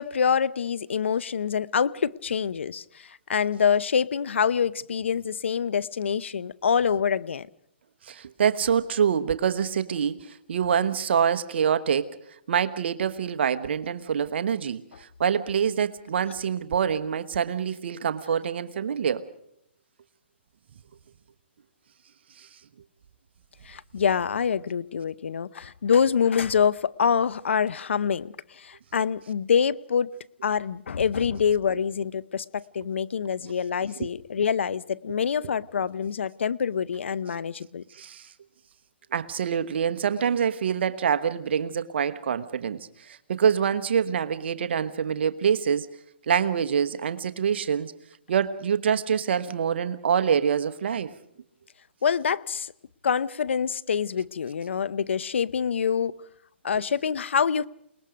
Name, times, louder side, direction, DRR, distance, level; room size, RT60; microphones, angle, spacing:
voice 1, 0.0-7.5 23.6-30.1 30.4-37.8 52.0-52.7 53.0-56.1 56.6-57.7, left 7 dB, 80° left, 0.7 m, -26 dB
voice 2, 8.0-12.2 12.5-19.3 22.4-22.5 37.9-38.3 39.1-45.9 46.3-47.9 48.3-51.1, right 7 dB, 65° right, 1.2 m, -25 dB
29.0 x 19.5 x 5.1 m
hypercardioid pair, 140°, 6 cm